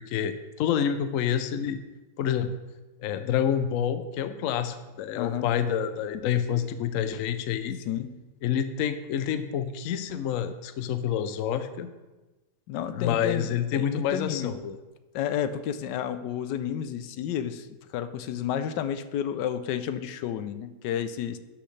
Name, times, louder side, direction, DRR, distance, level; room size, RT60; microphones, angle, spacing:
voice 1, 0.0-1.8 2.2-2.5 3.0-7.8 8.4-11.9 12.9-14.8, left 9 dB, 65° left, 10 dB, 0.8 m, -28 dB
voice 2, 5.2-5.5 7.9-8.2 12.7-14.5 15.1-21.4, left 9 dB, 85° left, 11 dB, 1.2 m, -31 dB
12.0 x 6.3 x 3.2 m, 1.1 s
omnidirectional pair, 1.8 m